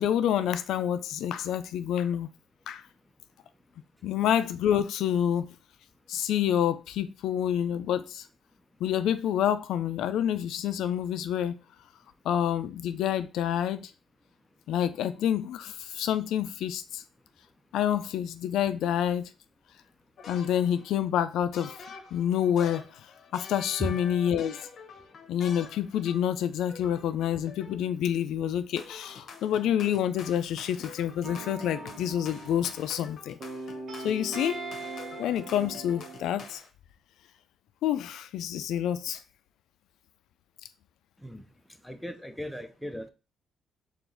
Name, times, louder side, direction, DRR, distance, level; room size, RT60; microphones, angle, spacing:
voice 1, 0.0-2.3 2.7-2.8 4.0-5.5 6.1-8.3 8.8-11.6 12.3-13.9 14.7-17.0 17.7-19.3 20.3-21.7 22.1-23.0 23.3-24.6 25.3-33.4 34.0-34.6 35.2-36.6 37.8-39.2, left 10 dB, 85° left, 0.3 m, -28 dB
sound 1, 20.2-21.0 21.5-26.4 26.7-28.0 28.8-36.7, left 5 dB, 60° left, 0.8 m, -47 dB
sound 2, 31.2-33.1 33.4-36.6, right 3 dB, 50° right, 1.1 m, -41 dB
voice 2, 41.8-43.1, equal, ahead, 0.6 m, -36 dB
4.7 x 2.4 x 3.8 m
cardioid pair, 90°, 0 cm